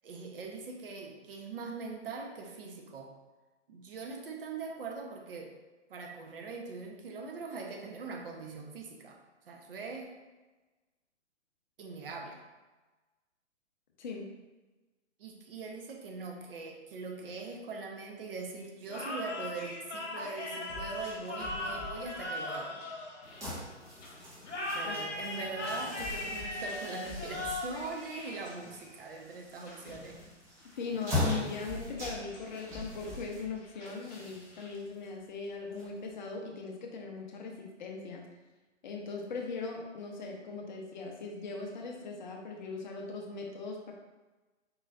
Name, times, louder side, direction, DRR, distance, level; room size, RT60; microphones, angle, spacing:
voice 1, 0.0-3.1 3.7-5.6 5.9-9.2 9.5-10.1 11.8-12.4 15.2-22.8 24.7-30.2, right 4 dB, 50° right, 1 dB, 0.8 m, -42 dB
voice 2, 14.0-14.3 24.8-25.0 25.4-25.5 30.7-38.2 38.8-43.9, left 4 dB, 40° left, 1 dB, 0.7 m, -40 dB
sound 1, 18.9-23.7 24.4-28.8, left 2 dB, 70° left, 1.1 m, -39 dB
sound 2, 20.7-25.1 25.4-34.7, left 2 dB, 25° left, 1.4 m, -49 dB
sound 3, 23.2-36.3, left 2 dB, 10° right, 0.5 m, -41 dB
4.7 x 4.0 x 2.4 m, 1.2 s
figure-of-eight pair, 130°, 36 cm